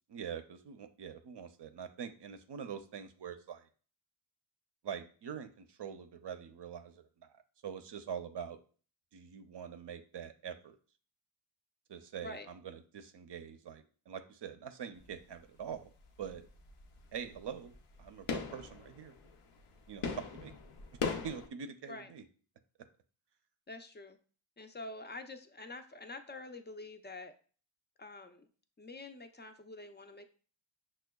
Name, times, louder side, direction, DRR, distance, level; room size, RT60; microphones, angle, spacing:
voice 1, 0.1-3.7 4.8-7.3 7.6-8.6 9.1-10.8 11.9-15.9 16.2-16.4 17.1-17.7 18.0-19.1 19.9-20.5 21.2-22.2, right 7 dB, 60° right, 8 dB, 0.5 m, -44 dB
sound 1, 15.0-15.4 15.7-21.5, left 5 dB, 90° left, 0.6 m, -40 dB
voice 2, 23.7-24.2 24.6-27.3 28.0-28.5 28.8-30.2, left 2 dB, 25° left, 7 dB, 0.4 m, -47 dB
6.1 x 2.1 x 2.2 m, 0.40 s
cardioid pair, 55°, 49 cm